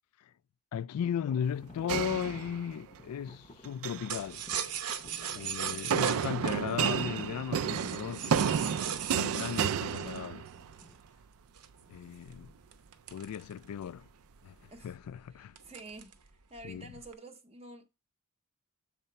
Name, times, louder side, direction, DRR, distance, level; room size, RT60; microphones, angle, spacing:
voice 1, 0.7-4.4 5.3-10.5 11.9-12.5 13.1-14.1 14.4-14.6 14.8-15.5 16.6-16.9, left 8 dB, 70° left, 0.3 m, -36 dB
sound 1, 1.0-11.0, left 2 dB, 30° left, 0.7 m, -56 dB
sound 2, 1.9-3.0 3.6-4.1 5.9-10.7, right 7 dB, 65° right, 0.4 m, -31 dB
sound 3, 4.1-11.0 11.6-14.0 14.4-14.5 14.8-15.1 15.6-16.3 16.6-17.1, right 8 dB, 80° right, 0.8 m, -38 dB
voice 2, 5.2-5.6 14.7-15.0 15.4-17.9, right 2 dB, 30° right, 0.7 m, -50 dB
6.7 x 4.2 x 5.6 m
head